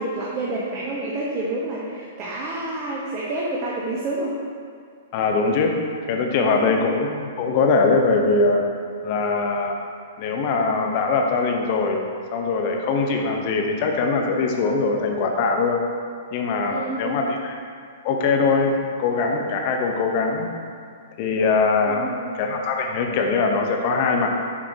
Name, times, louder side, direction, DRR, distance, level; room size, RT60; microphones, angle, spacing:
voice 1, 0.0-4.3 6.5-6.8 16.7-17.2 21.9-22.3, right 2 dB, 35° right, -5 dB, 0.9 m, -29 dB
voice 2, 5.1-5.7 6.1-8.7 9.0-9.7 10.2-12.0 12.3-15.8 16.3-17.5 18.0-20.5 21.2-22.1 22.4-24.3, left 4 dB, 45° left, 2 dB, 0.7 m, -22 dB
6.8 x 5.0 x 2.8 m, 2.3 s
hypercardioid pair, 115°, 0 cm